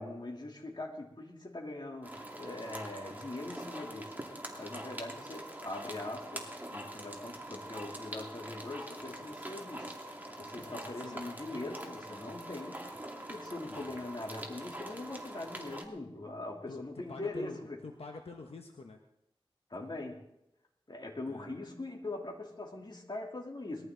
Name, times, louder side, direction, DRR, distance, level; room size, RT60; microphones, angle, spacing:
voice 1, 0.0-9.9 10.4-12.9 13.3-17.8 19.7-20.2 20.9-23.9, left 2 dB, 50° left, 0 dB, 3.4 m, -42 dB
sound 1, 2.0-15.8, right 1 dB, 20° right, 2.7 m, -44 dB
voice 2, 10.6-11.2 13.7-14.0 16.7-19.0 21.3-21.5, left 3 dB, 90° left, 3 dB, 1.2 m, -47 dB
20.5 x 14.0 x 4.0 m, 0.83 s
wide cardioid pair, 55°, 10 cm